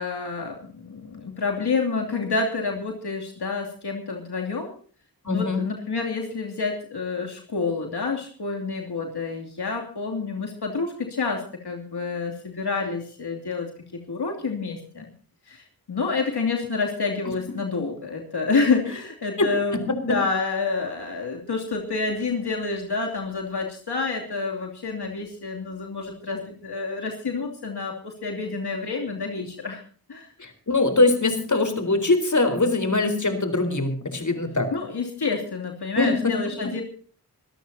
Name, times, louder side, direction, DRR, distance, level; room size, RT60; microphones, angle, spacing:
voice 1, 0.0-4.7 5.3-15.0 15.5-29.8 30.1-30.3 34.7-36.8, left 4 dB, 85° left, 1 dB, 2.8 m, -28 dB
voice 2, 5.2-5.6 19.4-19.5 30.4-34.7 36.0-36.3, left 2 dB, 50° left, 7 dB, 4.1 m, -22 dB
25.0 x 14.0 x 2.8 m, 0.43 s
wide cardioid pair, 55°, 38 cm